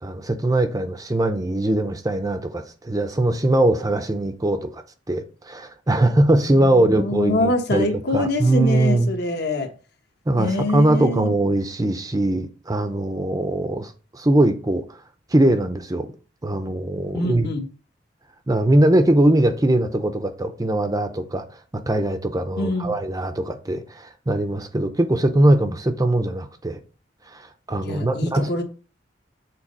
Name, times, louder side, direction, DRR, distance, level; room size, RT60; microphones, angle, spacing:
voice 1, 0.0-4.8 5.1-9.1 10.3-15.0 15.3-16.1 16.4-17.5 18.5-26.8 27.3-28.6, right 1 dB, 20° right, 0.6 m, -21 dB
voice 2, 6.3-9.7 10.4-11.3 17.1-17.7 22.6-23.0 27.8-28.6, left 1 dB, 55° left, 1.2 m, -25 dB
7.4 x 4.0 x 5.3 m
head